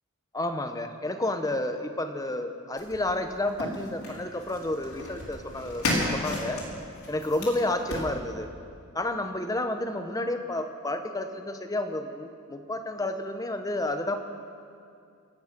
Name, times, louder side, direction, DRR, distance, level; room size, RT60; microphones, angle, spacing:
voice 1, 0.3-5.8 6.1-6.6 7.1-8.5 8.9-14.2, left 1 dB, 15° left, 7 dB, 0.8 m, -30 dB
sound 1, 2.8-8.1, left 1 dB, 80° left, 3.8 m, -33 dB
24.5 x 8.6 x 5.9 m, 2.4 s
head